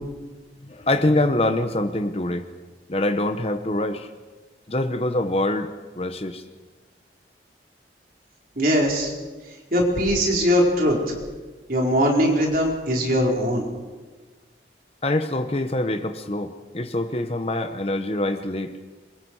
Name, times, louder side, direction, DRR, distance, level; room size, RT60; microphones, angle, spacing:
voice 1, 0.6-2.5 2.9-4.1 4.7-5.7 6.0-6.4 15.0-18.8, left 1 dB, 35° left, 9 dB, 1.0 m, -24 dB
voice 2, 8.6-9.1 9.7-11.0 11.7-13.7, equal, 50° right, -1 dB, 4.7 m, -20 dB
26.5 x 23.5 x 4.8 m, 1.3 s
head